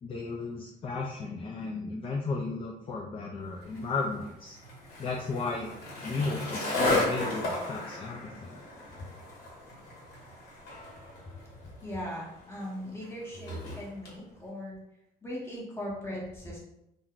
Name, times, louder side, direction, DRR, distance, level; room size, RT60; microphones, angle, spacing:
voice 1, 0.0-4.6 5.0-5.7 6.0-8.6, left 3 dB, 35° left, -1 dB, 0.4 m, -34 dB
Skateboard, 3.6-14.2, left 2 dB, 65° left, 1.2 m, -35 dB
voice 2, 11.3-14.8 15.2-16.6, left 1 dB, 15° left, -4 dB, 1.1 m, -39 dB
2.5 x 2.2 x 3.7 m, 0.83 s
cardioid pair, 110°, 17 cm